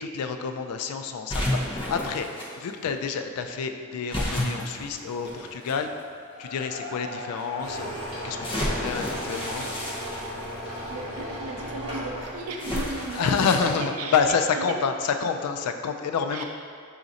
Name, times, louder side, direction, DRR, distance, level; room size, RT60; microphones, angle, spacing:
voice 1, 0.0-2.3 2.6-5.9 6.4-9.7 13.1-16.4, left 6 dB, 85° left, 7 dB, 0.3 m, -28 dB
sound 1, 1.3-2.5 4.1-5.7 6.5-6.6 8.4-10.8 12.6-13.8, left 1 dB, 25° left, 0.6 m, -31 dB
Cheering / Applause / Crowd, 6.1-13.7, left 1 dB, 65° left, 0.9 m, -44 dB
sound 2, 7.6-12.6, equal, 25° right, 1.2 m, -36 dB
voice 2, 10.9-14.2 14.5-14.8 16.3-16.4, right 3 dB, 80° right, 1 dB, 0.4 m, -35 dB
5.0 x 2.5 x 4.0 m, 2.2 s
head